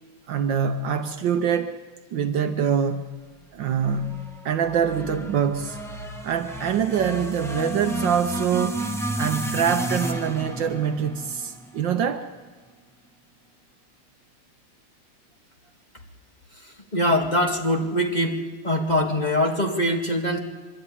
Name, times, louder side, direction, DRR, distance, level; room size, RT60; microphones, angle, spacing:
voice 1, 0.3-1.7 2.1-3.1 3.5-5.8 6.2-8.8 9.2-12.2, right 7 dB, 65° right, 8 dB, 1.5 m, -24 dB
sound 1, 3.8-12.1, right 1 dB, ahead, 1.1 m, -32 dB
voice 2, 16.5-18.4 18.6-20.4, left 1 dB, 20° left, 1 dB, 1.9 m, -23 dB
24.0 x 12.5 x 9.8 m, 1.3 s
omnidirectional pair, 2.3 m